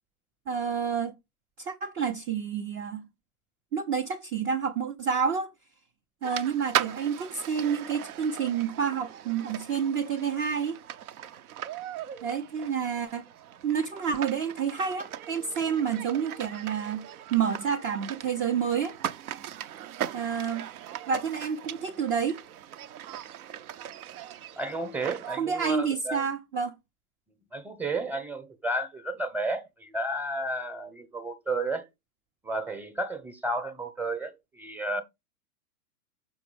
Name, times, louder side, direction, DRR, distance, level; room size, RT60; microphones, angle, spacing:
voice 1, 0.5-1.1 1.6-3.1 3.7-5.5 6.2-10.8 12.2-13.2 13.6-18.9 20.1-20.7 21.1-22.4 25.4-26.7, right 7 dB, 25° right, 0.4 m, -29 dB
sound 1, 6.2-25.4, right 11 dB, 70° right, 0.7 m, -39 dB
voice 2, 24.6-26.2 27.5-31.8 32.4-35.0, right 2 dB, 5° right, 0.8 m, -32 dB
6.1 x 4.8 x 3.3 m
hypercardioid pair, 115°, 46 cm